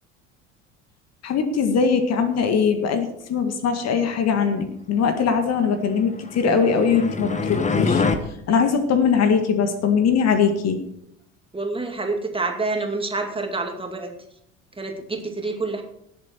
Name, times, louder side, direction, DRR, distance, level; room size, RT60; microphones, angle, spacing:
voice 1, 1.2-8.0 8.5-10.8, left 6 dB, 45° left, 7 dB, 1.8 m, -21 dB
sound 1, 6.2-8.2, left 4 dB, 20° left, 1.4 m, -24 dB
voice 2, 11.5-14.1 14.8-15.8, right 3 dB, 15° right, 3 dB, 2.4 m, -27 dB
18.5 x 7.9 x 4.5 m, 0.73 s
figure-of-eight pair, 65°, 37 cm